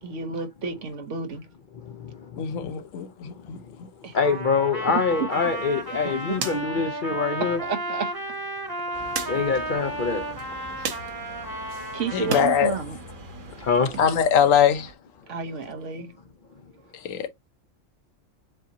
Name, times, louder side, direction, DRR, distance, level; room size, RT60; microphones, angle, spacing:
voice 1, 0.0-1.5 4.0-4.2 4.9-5.0 6.0-6.4 6.7-6.8 7.6-8.1 10.8-11.0 11.9-13.0 15.2-16.1 16.7-16.9, right 5 dB, 70° right, 1.2 m, -32 dB
voice 2, 1.7-2.8 3.2-7.6 9.3-10.8 13.6-14.0, left 5 dB, 50° left, 0.6 m, -26 dB
voice 3, 2.4-3.6 12.1-12.7 14.0-14.9 17.0-17.3, left 8 dB, 90° left, 1.1 m, -22 dB
Trumpet, 4.2-12.7, right 1 dB, 20° right, 1.1 m, -33 dB
sound 1, 5.3-12.5 12.9-14.0, right 5 dB, 85° right, 1.4 m, -38 dB
sound 2, 8.9-14.9, right 2 dB, 45° right, 1.0 m, -44 dB
7.2 x 2.7 x 2.7 m
omnidirectional pair, 1.3 m